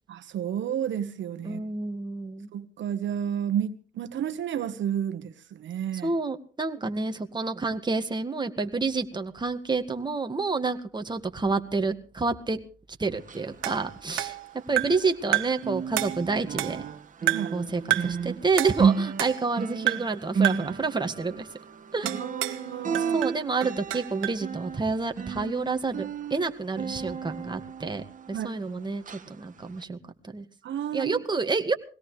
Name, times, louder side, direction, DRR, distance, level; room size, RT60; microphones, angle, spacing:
voice 1, 0.1-1.6 2.5-6.1 17.3-17.6 22.1-23.2 28.3-28.5 30.6-31.2, right 9 dB, 70° right, 10 dB, 1.4 m, -31 dB
voice 2, 1.4-2.5 6.0-12.6 13.0-14.4 14.7-16.8 17.5-21.5 21.9-22.1 23.1-30.0 30.3-30.5 30.9-31.7, right 4 dB, 20° right, 6 dB, 1.9 m, -29 dB
sound 1, 13.1-15.3 15.6-28.7 29.1-29.3 29.8-29.9, right 6 dB, 40° right, 1.7 m, -32 dB
sound 2, 13.6-15.1 15.3-15.7 16.0-16.9 17.3-17.6 17.9-18.2 18.6-19.6 19.9-20.2 20.4-20.8 22.1-22.7 22.9-24.4, right 16 dB, 90° right, 1.4 m, -30 dB
21.5 x 17.5 x 3.3 m, 0.37 s
cardioid pair, 90°, 20 cm